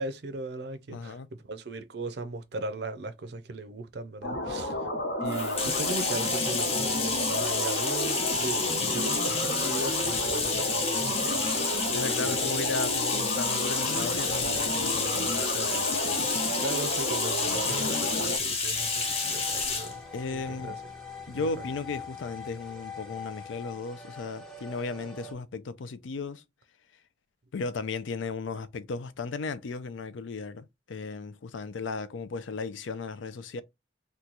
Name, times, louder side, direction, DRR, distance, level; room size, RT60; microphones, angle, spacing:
voice 1, 0.0-4.8 5.2-12.0 12.2-12.7 16.6-20.0 20.3-20.8 21.3-21.7, right 2 dB, 60° right, 0.5 m, -38 dB
voice 2, 0.9-1.3 11.9-16.3 20.1-20.7 21.3-26.4 27.5-33.6, left 4 dB, 85° left, 0.4 m, -36 dB
sound 1, 4.2-18.4, left 1 dB, 65° left, 0.9 m, -32 dB
Bathtub (filling or washing), 5.3-19.9, left 4 dB, 30° left, 0.8 m, -30 dB
sound 2, 18.8-25.3, left 5 dB, ahead, 0.6 m, -43 dB
3.0 x 2.2 x 3.8 m
head